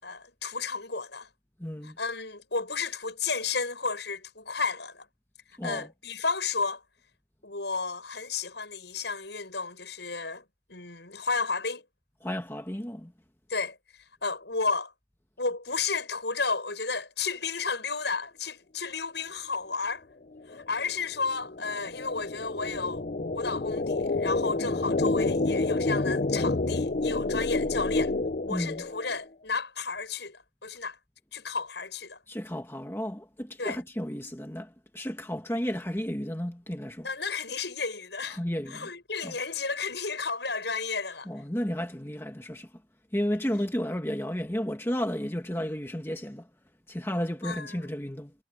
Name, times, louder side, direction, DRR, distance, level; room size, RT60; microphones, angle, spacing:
voice 1, 0.0-1.3 1.8-5.1 5.6-6.8 7.4-10.4 10.7-11.8 13.5-13.8 14.2-14.9 15.4-20.0 20.5-23.1 23.3-28.1 28.5-31.0 31.3-32.2 33.6-33.8 37.0-38.4 38.7-41.3 47.4-47.9, left 4 dB, 70° left, 7.3 m, -32 dB
voice 2, 1.6-2.0 5.6-5.9 12.2-13.1 24.7-24.8 28.5-28.8 32.3-37.1 38.3-38.9 39.2-39.4 41.3-42.7 43.1-46.5 46.9-48.3, equal, 15° left, 1.4 m, -33 dB
sound 1, 20.4-29.2, left 2 dB, 45° left, 0.6 m, -29 dB
head